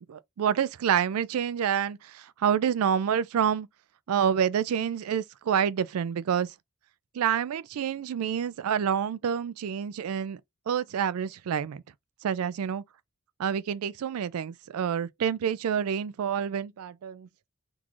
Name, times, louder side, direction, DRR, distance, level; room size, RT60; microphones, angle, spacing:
voice 1, 0.1-3.7 4.1-6.5 7.1-10.4 10.7-11.8 12.2-12.8 13.4-17.3, right 8 dB, 80° right, 0.3 m, -28 dB
3.7 x 3.0 x 2.4 m
head